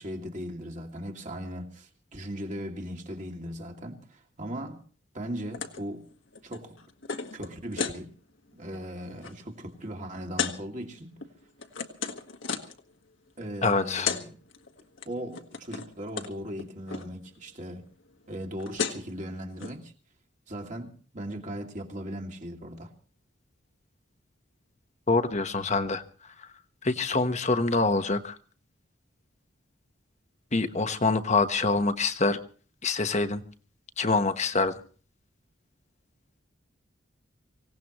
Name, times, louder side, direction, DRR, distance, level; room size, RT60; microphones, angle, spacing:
voice 1, 0.0-4.8 5.1-6.1 6.4-6.8 7.3-8.1 8.5-11.1 13.4-14.4 15.0-17.8 18.3-19.9 20.5-22.9, equal, 40° right, 2.4 m, -38 dB
sound 1, 5.5-5.8 6.1-8.0 8.5-8.7 9.0-9.3 10.4-10.6 11.2-12.8 13.7-13.8 13.9-14.2 14.5-15.1 15.3-16.3 16.6-17.1 18.3-18.4 18.6-19.1 19.6-19.7, left 6 dB, 65° left, 1.6 m, -33 dB
voice 2, 13.6-14.1 25.1-26.0 26.8-28.3 30.5-32.4 32.8-33.4 34.0-34.7, left 3 dB, 35° left, 1.2 m, -25 dB
25.0 x 17.5 x 3.1 m
head